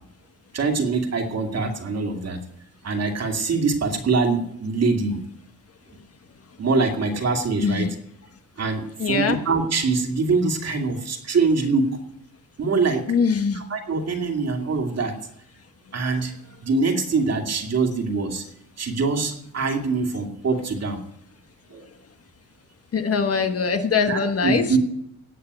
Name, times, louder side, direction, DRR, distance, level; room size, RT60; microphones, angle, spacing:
voice 1, 0.5-2.4 2.8-5.2 6.6-7.9 8.6-12.0 12.6-13.1 13.5-15.1 15.9-16.3 16.6-18.5 18.8-21.0 21.7-21.8 24.1-24.8, right 4 dB, 45° right, 3 dB, 2.5 m, -24 dB
voice 2, 7.6-7.9 9.0-9.4 13.1-13.6 22.9-24.8, left 5 dB, 40° left, 7 dB, 1.3 m, -22 dB
18.0 x 6.7 x 8.2 m, 0.77 s
cardioid pair, 105°, 35 cm